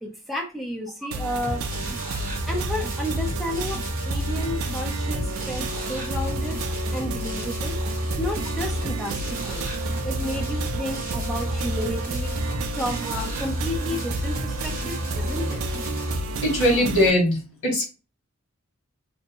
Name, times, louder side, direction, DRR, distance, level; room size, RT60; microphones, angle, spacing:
voice 1, 0.0-1.6 2.5-6.6 6.9-7.8 8.2-9.6 10.0-15.6, left 1 dB, ahead, -1 dB, 0.5 m, -32 dB
sound 1, 1.1-17.1, right 2 dB, 65° right, 0.3 m, -31 dB
sound 2, 1.4-16.2, equal, 40° right, 0.9 m, -31 dB
voice 2, 16.4-17.8, left 1 dB, 85° left, 0 dB, 1.3 m, -21 dB
2.6 x 2.1 x 2.9 m, 0.31 s
head